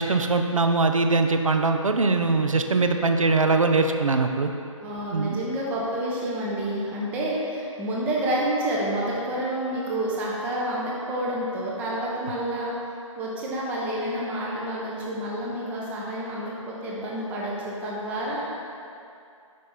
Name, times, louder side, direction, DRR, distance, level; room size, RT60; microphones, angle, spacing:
voice 1, 0.0-4.5 5.1-5.4, right 3 dB, 75° right, 6 dB, 0.5 m, -22 dB
voice 2, 4.8-12.7 13.2-18.6, right 1 dB, 10° right, -5 dB, 0.6 m, -29 dB
5.2 x 5.1 x 4.4 m, 2.5 s
figure-of-eight pair, 140°, 17 cm